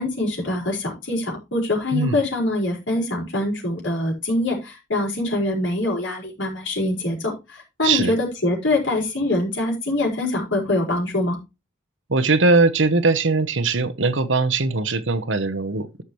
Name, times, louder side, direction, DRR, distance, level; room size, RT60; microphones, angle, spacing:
voice 1, 0.0-11.4, left 2 dB, 85° left, 5.2 m, -24 dB
voice 2, 7.8-8.1 12.1-16.0, right 3 dB, 90° right, 1.1 m, -20 dB
14.0 x 6.0 x 3.2 m
head